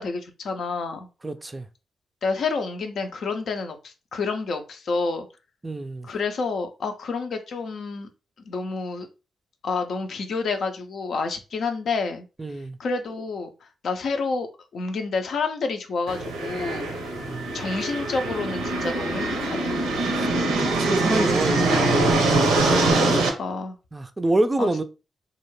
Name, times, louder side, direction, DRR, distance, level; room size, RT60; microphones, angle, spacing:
voice 1, 0.0-1.1 2.2-5.3 6.0-8.1 8.4-9.1 9.6-12.3 12.8-14.5 14.7-16.9 17.5-19.7 23.1-23.8 24.6-24.7, left 4 dB, 65° left, 0.5 m, -29 dB
voice 2, 1.2-1.7 5.6-6.1 12.4-12.8 17.2-17.5 20.1-21.8 23.9-24.8, right 2 dB, 25° right, 0.4 m, -27 dB
sound 1, 16.1-23.3, right 2 dB, 85° right, 0.5 m, -23 dB
2.3 x 2.1 x 3.0 m
hypercardioid pair, 45°, 0 cm